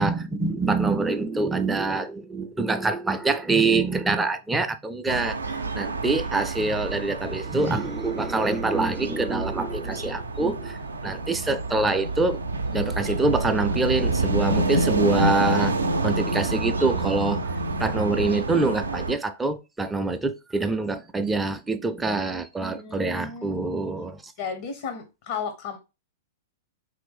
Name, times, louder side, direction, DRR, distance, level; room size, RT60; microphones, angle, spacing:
voice 1, 0.0-5.4 5.7-10.8 11.0-12.4 12.7-15.7 16.0-17.5 17.8-24.3, right 3 dB, 10° right, 0.4 m, -25 dB
sound 1, 5.1-19.1, right 2 dB, 85° right, 0.4 m, -28 dB
voice 2, 22.6-23.6 24.4-25.8, left 6 dB, 55° left, 0.6 m, -34 dB
3.0 x 2.5 x 3.4 m
figure-of-eight pair, 105°, 0 cm